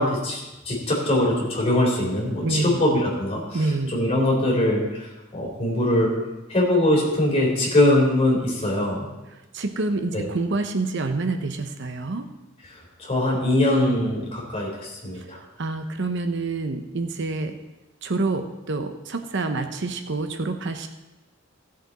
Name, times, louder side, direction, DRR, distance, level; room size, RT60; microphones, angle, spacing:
voice 1, 0.0-6.1 6.5-9.1 10.1-10.2 13.0-15.4, left 1 dB, 30° left, -3 dB, 3.9 m, -22 dB
voice 2, 2.4-2.8 3.5-3.9 9.3-12.3 15.1-15.3 15.6-17.6 18.0-20.9, right 3 dB, 60° right, 7 dB, 0.8 m, -27 dB
16.0 x 7.6 x 4.1 m, 1.0 s
head